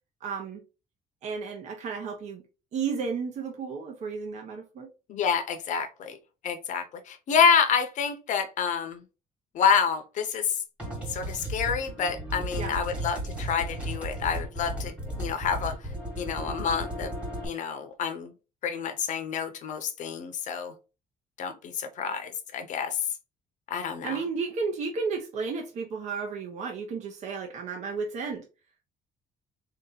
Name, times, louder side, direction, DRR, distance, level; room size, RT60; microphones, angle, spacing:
voice 1, 0.2-0.6 1.2-2.4 2.7-4.9 12.5-12.8 24.0-28.4, right 5 dB, 45° right, 0.8 m, -33 dB
voice 2, 5.1-6.2 6.4-9.0 9.5-10.6 11.1-15.8 16.2-17.1 17.4-18.3 18.6-20.7 21.4-23.0 23.7-24.2, left 6 dB, 50° left, 0.7 m, -28 dB
sound 1, 10.8-17.4, right 1 dB, 5° right, 1.4 m, -35 dB
3.9 x 2.8 x 3.8 m
cardioid pair, 180°, 16 cm